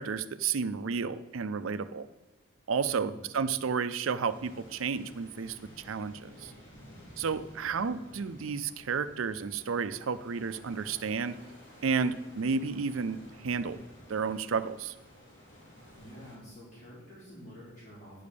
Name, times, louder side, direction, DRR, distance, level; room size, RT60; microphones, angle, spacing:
voice 1, 0.0-2.1 2.7-5.6 5.8-6.5 7.2-11.4 11.8-13.8 14.1-14.9, right 5 dB, 80° right, 12 dB, 0.5 m, -32 dB
voice 2, 2.8-3.1 16.0-18.3, equal, 45° left, -10 dB, 3.7 m, -49 dB
sound 1, 4.2-16.4, equal, 65° left, 3.4 m, -53 dB
10.0 x 5.2 x 6.7 m, 1.1 s
head